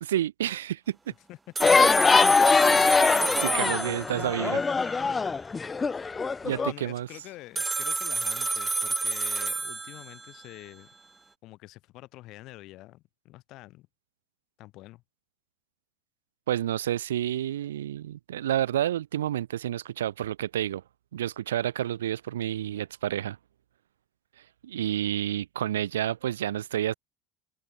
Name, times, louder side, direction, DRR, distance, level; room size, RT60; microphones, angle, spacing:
voice 1, 0.0-1.1 3.0-4.6 6.4-7.1 16.5-20.8 21.1-23.4 24.6-26.9, right 11 dB, 80° right, 0.8 m, -29 dB
sound 1, 1.6-6.7, left 4 dB, 25° left, 1.0 m, -22 dB
sound 2, 1.6-4.5 7.6-10.4, right 3 dB, 20° right, 1.1 m, -30 dB
voice 2, 6.5-10.9 11.4-13.9 14.6-15.0, left 18 dB, 60° left, 6.0 m, -46 dB
open air
hypercardioid pair, 70°, 0 cm